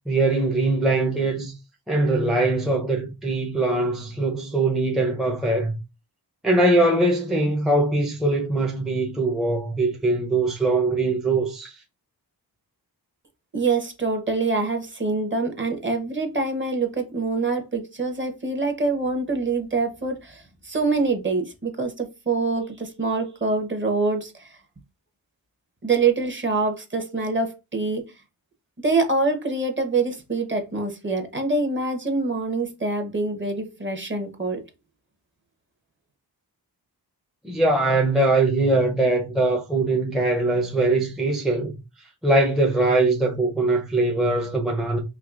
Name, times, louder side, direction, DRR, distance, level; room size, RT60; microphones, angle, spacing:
voice 1, 0.1-1.5 1.9-5.7 6.4-11.8 37.4-41.8 42.2-45.0, right 2 dB, ahead, 0.6 m, -22 dB
voice 2, 13.5-24.6 25.8-28.1 28.8-34.6, right 3 dB, 30° right, 0.9 m, -25 dB
4.6 x 2.9 x 2.4 m
wide cardioid pair, 105°, 41 cm